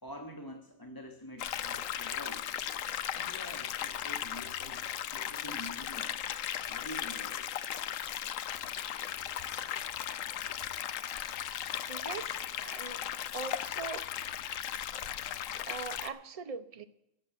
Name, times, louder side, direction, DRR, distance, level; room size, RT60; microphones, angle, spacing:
voice 1, 0.0-2.5 3.1-4.8 5.1-6.1 6.7-7.5, equal, 15° left, 3 dB, 1.2 m, -46 dB
sound 1, 1.4-16.1, left 10 dB, 80° left, 1.1 m, -37 dB
voice 2, 11.9-12.3 12.6-13.0 13.3-14.0 15.7-16.8, right 5 dB, 35° right, 9 dB, 0.8 m, -41 dB
12.5 x 7.5 x 8.9 m, 0.82 s
omnidirectional pair, 1.3 m